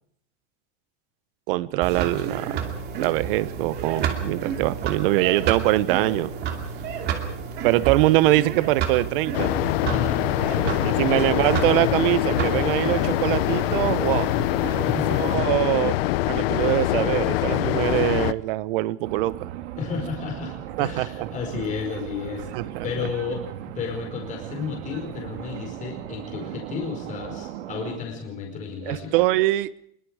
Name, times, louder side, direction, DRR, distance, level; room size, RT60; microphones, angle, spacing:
voice 1, 1.5-2.7 3.0-6.3 7.6-9.5 10.8-14.4 15.2-16.0 16.3-19.5 20.8-21.6 22.5-22.8 28.8-29.7, right 17 dB, 55° right, 18 dB, 1.0 m, -23 dB
sound 1, 1.8-15.4, right 7 dB, 30° right, 2.6 m, -31 dB
sound 2, 9.3-18.3, left 16 dB, 60° left, 1.0 m, -24 dB
voice 2, 9.8-11.2 14.8-15.5 19.8-22.5 22.8-23.4 23.7-29.1, left 6 dB, 20° left, 2 dB, 4.9 m, -32 dB
sound 3, 19.0-28.0, right 12 dB, 80° right, 2.1 m, -37 dB
24.0 x 22.5 x 4.9 m, 0.68 s
supercardioid pair, 175°, 34 cm